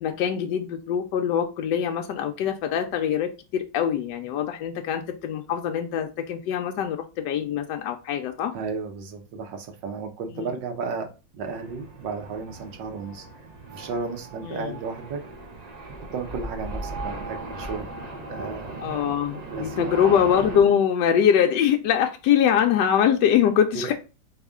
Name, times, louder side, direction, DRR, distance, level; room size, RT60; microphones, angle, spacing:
voice 1, 0.0-8.5 10.4-10.5 14.5-14.7 18.8-23.9, left 8 dB, 75° left, 1.1 m, -23 dB
voice 2, 8.5-11.1 11.3-13.3 13.7-15.2 16.1-17.9 18.3-19.9 23.7-23.9, right 4 dB, 75° right, 1.6 m, -33 dB
sound 1, 11.4-20.6, right 2 dB, 50° right, 0.5 m, -37 dB
4.1 x 3.6 x 3.5 m
omnidirectional pair, 2.0 m